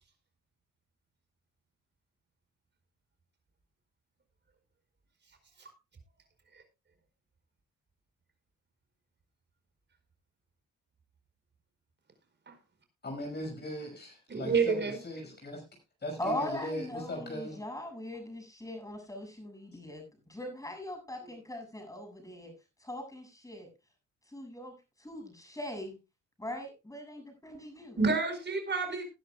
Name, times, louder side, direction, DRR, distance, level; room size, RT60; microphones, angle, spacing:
voice 1, 13.0-15.6 16.0-17.6, left 1 dB, 35° left, 2 dB, 5.8 m, -39 dB
voice 2, 14.3-15.0 28.0-29.0, right 4 dB, 35° right, 7 dB, 4.9 m, -29 dB
voice 3, 16.2-22.5 22.8-23.7 24.3-26.0 26.4-28.0, left 1 dB, 10° left, 4 dB, 7.3 m, -40 dB
20.0 x 10.5 x 2.3 m, 0.27 s
cardioid pair, 90°, 30 cm